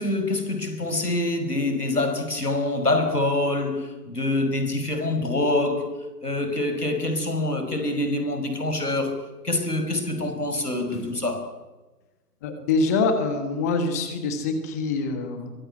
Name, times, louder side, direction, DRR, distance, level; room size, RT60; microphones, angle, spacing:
voice 1, 0.0-5.9 6.2-11.5, left 2 dB, 75° left, 6.1 m, -25 dB
voice 2, 12.4-15.5, left 3 dB, 10° left, 1.3 m, -25 dB
23.5 x 21.5 x 9.7 m
figure-of-eight pair, 145°, 47 cm